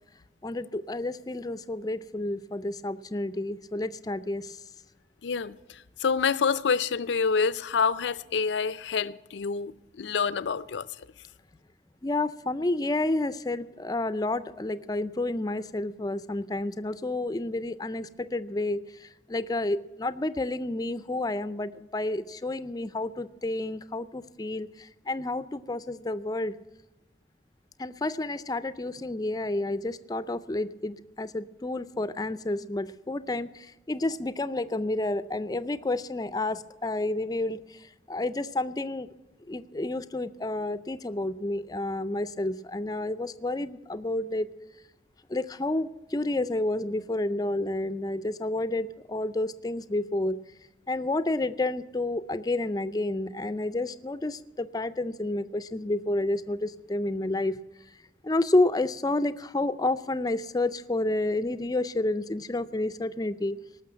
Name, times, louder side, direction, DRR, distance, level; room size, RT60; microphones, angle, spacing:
voice 1, 0.4-4.6 12.0-26.6 27.8-37.8 38.1-39.1 39.5-44.5 45.3-50.4 50.9-57.6 58.2-63.6, left 2 dB, 20° left, 0.4 m, -30 dB
voice 2, 5.2-5.6 6.0-10.9, left 5 dB, 80° left, 0.5 m, -27 dB
18.5 x 6.4 x 8.6 m
head